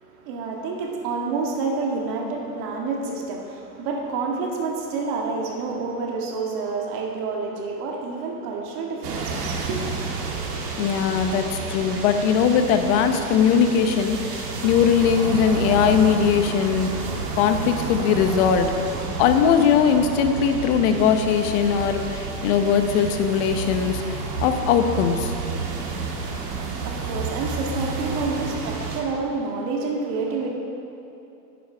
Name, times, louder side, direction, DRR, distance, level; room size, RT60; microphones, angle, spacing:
voice 1, 0.0-10.6 26.5-30.5, right 4 dB, 45° right, 0 dB, 1.9 m, -29 dB
sound 1, 9.0-29.0, right 4 dB, 70° right, 2.3 m, -30 dB
voice 2, 10.8-16.9 17.4-18.7 19.2-25.3, left 7 dB, 45° left, 7 dB, 1.0 m, -20 dB
11.0 x 9.5 x 4.5 m, 2.8 s
supercardioid pair, 135°, 47 cm